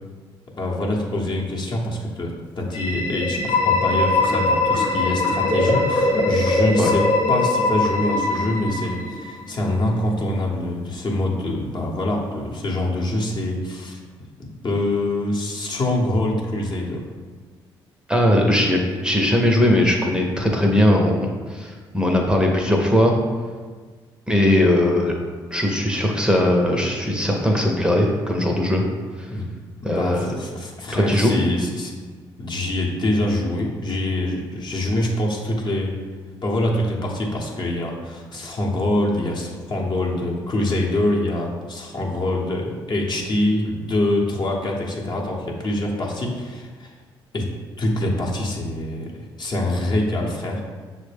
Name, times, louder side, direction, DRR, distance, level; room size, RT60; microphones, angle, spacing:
voice 1, 0.6-14.0 14.4-17.1 29.3-29.5 29.8-31.9 32.4-36.0 36.4-46.9 47.3-47.5 47.8-50.7, left 1 dB, 45° left, -1 dB, 0.9 m, -25 dB
sound 1, 2.7-9.5, left 2 dB, 75° left, 0.8 m, -21 dB
voice 2, 18.1-23.1 24.3-25.1 25.5-28.8 29.2-29.3 29.8-30.3 30.9-31.3, left 1 dB, 10° right, 0 dB, 0.6 m, -19 dB
5.9 x 2.1 x 3.3 m, 1.5 s
supercardioid pair, 55°, 11 cm